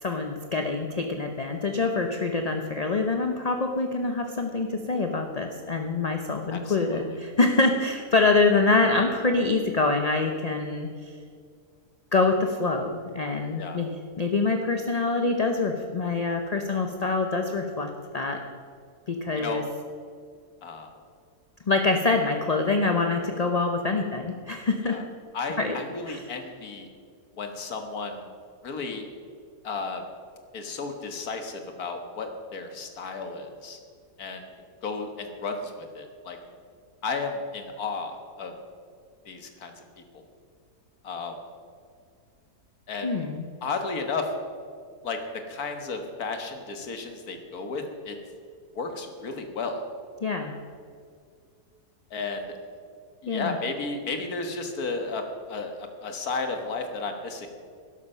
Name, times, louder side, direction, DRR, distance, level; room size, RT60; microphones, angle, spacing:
voice 1, 0.0-11.1 12.1-18.4 19.1-19.6 21.7-25.0 25.6-25.8 26.1-26.2 43.0-43.5 50.2-50.5 53.3-53.5, left 3 dB, 40° left, 4 dB, 0.6 m, -25 dB
voice 2, 6.5-7.0 13.6-13.8 19.4-19.7 20.6-20.9 24.8-25.0 25.3-26.9 27.4-28.3 28.6-29.0 29.6-30.0 30.5-33.8 34.2-34.4 34.8-36.4 37.0-38.1 38.4-38.5 39.3-39.7 40.0-40.1 41.0-41.4 42.9-43.1 43.6-44.3 45.0-45.2 45.5-48.2 48.8-49.8 52.1-52.5 53.2-57.5, left 4 dB, 65° left, 5 dB, 1.9 m, -33 dB
12.5 x 11.0 x 5.6 m, 2.2 s
omnidirectional pair, 1.7 m